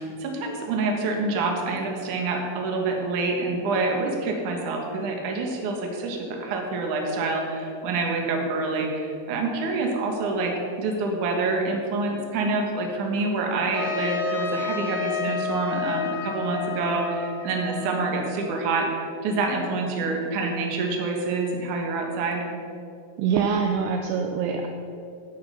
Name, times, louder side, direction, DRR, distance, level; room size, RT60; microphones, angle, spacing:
voice 1, 0.0-22.4, right 3 dB, 60° right, 1 dB, 2.6 m, -27 dB
Trumpet, 13.7-18.6, left 7 dB, 60° left, 2.5 m, -31 dB
voice 2, 23.2-24.7, right 6 dB, 80° right, 4 dB, 2.5 m, -24 dB
16.5 x 6.7 x 5.7 m, 2.5 s
omnidirectional pair, 4.9 m